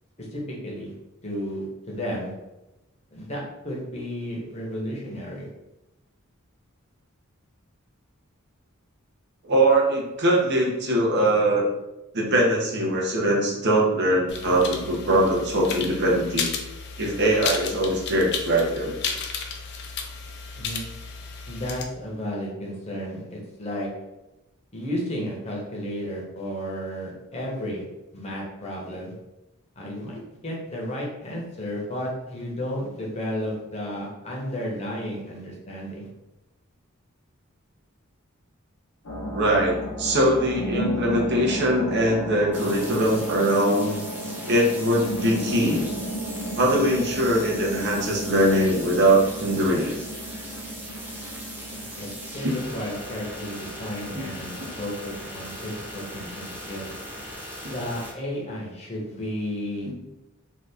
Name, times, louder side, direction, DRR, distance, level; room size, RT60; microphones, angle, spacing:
voice 1, 0.3-0.9 1.2-2.3 3.1-5.5 20.5-20.8 21.5-23.9 24.7-27.8 28.1-29.1 29.8-36.1 51.7-56.9 57.7-59.9, equal, 30° left, -3 dB, 0.8 m, -33 dB
voice 2, 9.4-11.7 12.1-16.5 17.0-19.0 39.3-43.9 44.5-45.8 46.6-50.0 52.4-52.6 54.1-54.3 54.6-54.7 57.6-57.7 59.9-60.0, right 1 dB, 55° right, -1 dB, 0.7 m, -22 dB
sound 1, 14.3-21.8, left 5 dB, 50° left, 0.4 m, -33 dB
sound 2, 39.0-57.3, equal, 85° left, 0.8 m, -35 dB
sound 3, 42.5-58.1, equal, 10° right, 0.6 m, -39 dB
2.8 x 2.4 x 3.4 m, 0.97 s
head